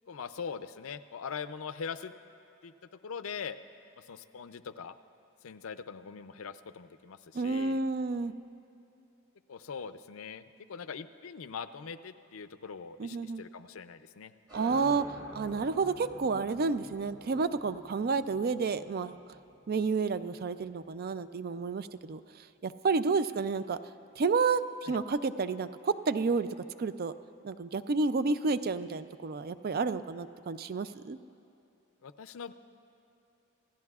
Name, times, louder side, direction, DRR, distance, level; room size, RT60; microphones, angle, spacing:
voice 1, 0.1-2.1 2.6-2.7 3.0-3.6 4.0-5.0 5.4-7.8 9.5-14.3 24.9-25.0 32.0-32.5, left 6 dB, 75° left, 12 dB, 0.5 m, -42 dB
voice 2, 7.3-8.3 13.0-13.4 14.5-19.2 19.7-23.8 24.2-26.5 26.8-27.1 27.4-31.2, right 4 dB, 45° right, 12 dB, 0.4 m, -30 dB
sound 1, 14.5-21.8, right 1 dB, 20° right, 1.4 m, -51 dB
27.5 x 16.0 x 2.4 m, 2.9 s
head